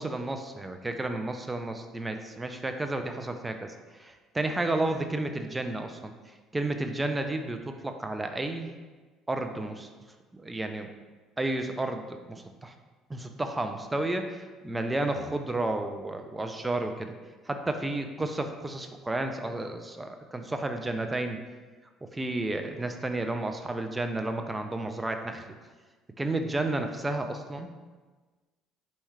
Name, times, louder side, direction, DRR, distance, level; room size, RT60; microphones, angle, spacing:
voice 1, 0.0-6.1 6.5-8.7 9.3-9.9 10.3-10.9 11.4-12.7 13.1-17.1 17.5-21.4 22.0-25.4 26.2-27.7, right 2 dB, 15° right, 6 dB, 0.4 m, -32 dB
4.1 x 3.6 x 3.2 m, 1.3 s
cardioid pair, 110°, 0 cm